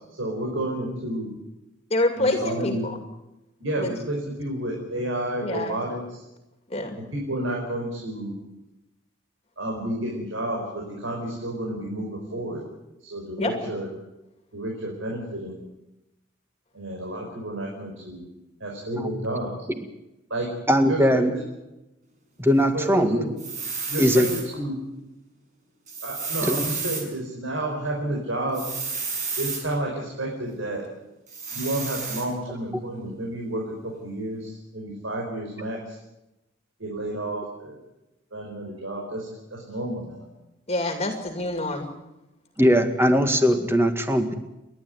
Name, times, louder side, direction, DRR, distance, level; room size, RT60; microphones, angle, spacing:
voice 1, 0.2-1.3 2.2-2.9 3.6-6.2 7.0-8.4 9.6-12.6 13.0-13.9 14.5-15.6 16.7-18.3 18.6-19.5 20.3-20.5 20.8-21.2 22.7-23.3 23.9-24.8 26.0-28.6 29.4-30.8 31.5-36.0 36.8-37.8 38.3-40.2, right 1 dB, 90° right, -1 dB, 5.3 m, -30 dB
voice 2, 1.9-3.0 3.8-3.9 5.4-5.8 6.7-7.0 13.4-13.7 40.7-41.9, left 2 dB, 30° left, 5 dB, 2.4 m, -26 dB
voice 3, 20.7-21.3 22.4-23.2 24.0-24.3 26.4-26.7 42.6-44.3, equal, 10° right, 7 dB, 2.0 m, -20 dB
sound 1, 23.4-24.4 25.9-27.0 28.5-29.6 31.3-32.2, right 4 dB, 40° right, 6.4 m, -31 dB
29.5 x 12.0 x 9.5 m, 0.95 s
head